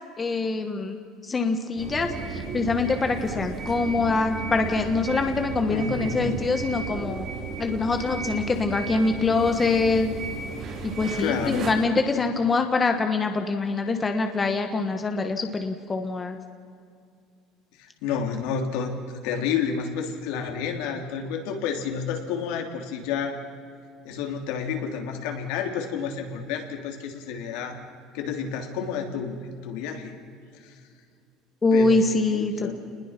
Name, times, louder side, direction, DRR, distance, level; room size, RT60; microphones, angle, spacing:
voice 1, 0.2-1.0 1.2-7.3 7.6-10.1 10.8-16.4 31.6-32.7, left 3 dB, 20° left, 5 dB, 1.3 m, -24 dB
sound 1, 1.8-11.7, right 4 dB, 45° right, 5.2 m, -34 dB
voice 2, 5.7-6.4 11.2-11.7 17.8-23.4 24.0-27.8 28.1-30.1 30.5-30.7 31.7-32.7, left 6 dB, 75° left, 3 dB, 3.3 m, -30 dB
28.5 x 20.5 x 6.0 m, 2.3 s
cardioid pair, 145°, 0 cm